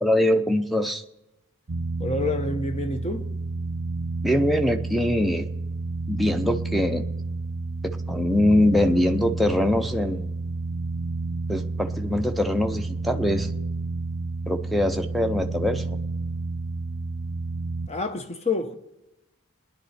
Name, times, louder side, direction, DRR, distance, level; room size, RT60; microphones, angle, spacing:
voice 1, 0.0-1.0 4.2-5.5 6.1-7.0 7.8-10.3 11.5-13.5 14.5-16.0, left 1 dB, ahead, 0.7 m, -23 dB
sound 1, 1.7-17.9, right 3 dB, 50° right, 0.6 m, -30 dB
voice 2, 2.0-3.3 17.9-18.7, left 3 dB, 30° left, 1.0 m, -28 dB
22.0 x 10.5 x 4.4 m
head